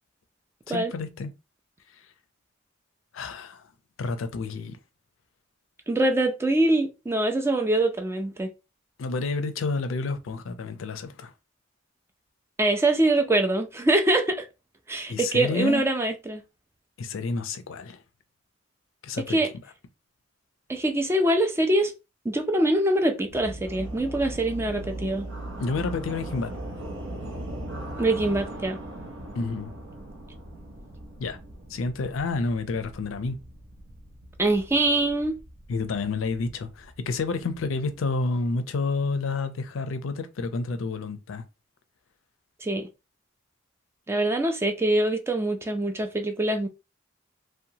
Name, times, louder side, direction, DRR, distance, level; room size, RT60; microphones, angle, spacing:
voice 1, 0.7-1.3 3.1-3.6 4.0-4.8 9.0-11.3 15.1-15.8 17.0-18.0 19.0-19.4 25.6-26.5 29.3-29.7 31.2-31.4 31.7-33.4 35.7-41.4, left 3 dB, 80° left, 0.5 m, -29 dB
voice 2, 5.9-8.5 12.6-14.4 14.9-16.4 19.3-19.5 20.7-21.9 22.2-25.3 28.0-28.8 34.4-35.4 42.6-42.9 44.1-46.7, right 1 dB, 15° right, 0.4 m, -24 dB
sound 1, 23.3-38.2, right 1 dB, 75° right, 0.7 m, -39 dB
2.8 x 2.1 x 2.7 m
head